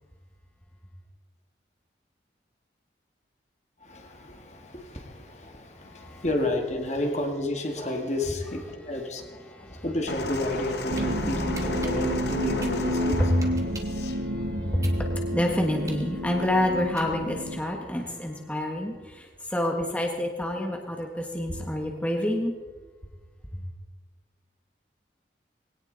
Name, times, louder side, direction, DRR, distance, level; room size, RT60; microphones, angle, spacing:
voice 1, 3.8-13.2, left 1 dB, 40° left, 3 dB, 1.9 m, -31 dB
voice 2, 5.9-6.2 9.2-9.9 11.1-12.0 12.2-12.6 13.1-22.5 23.5-23.6, left 1 dB, 10° left, 1 dB, 1.5 m, -29 dB
sound 1, 10.1-14.2 15.1-15.2, left 2 dB, 70° left, 1.5 m, -35 dB
sound 2, 10.9-17.6, equal, 80° right, 1.4 m, -30 dB
sound 3, 11.0-11.1 11.5-14.0 14.4-17.5, right 3 dB, 20° right, 1.8 m, -45 dB
21.0 x 17.5 x 4.0 m, 1.4 s
head